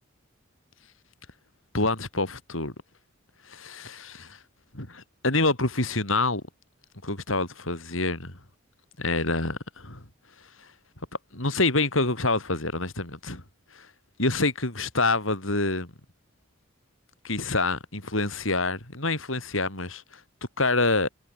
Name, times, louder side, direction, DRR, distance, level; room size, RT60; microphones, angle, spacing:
voice 1, 1.7-2.7 3.5-4.4 4.7-6.4 7.0-8.3 9.0-10.0 10.6-10.7 11.3-13.4 13.7-13.9 14.2-15.9 17.2-20.2 20.6-21.1, left 2 dB, 75° left, 6.9 m, -27 dB
head